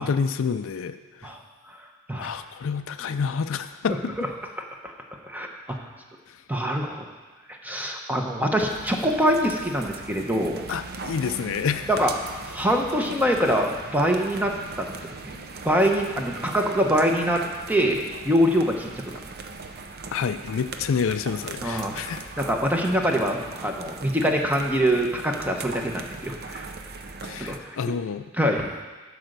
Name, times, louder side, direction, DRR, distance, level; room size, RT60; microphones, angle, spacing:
voice 1, 0.0-1.3 2.2-4.1 6.3-6.4 10.7-11.9 20.1-22.3 27.2-28.3, left 6 dB, 65° left, 10 dB, 0.4 m, -28 dB
voice 2, 5.3-5.9 6.5-7.1 7.5-10.6 11.9-12.1 12.5-14.9 15.2-15.3 15.6-17.4 17.7-18.9 21.6-22.0 22.4-26.7 27.4-27.8 28.4-28.7, equal, 10° right, 2 dB, 0.9 m, -24 dB
sound 1, 8.6-27.6, right 3 dB, 50° right, 0.7 m, -39 dB
11.5 x 4.9 x 6.7 m, 1.3 s
head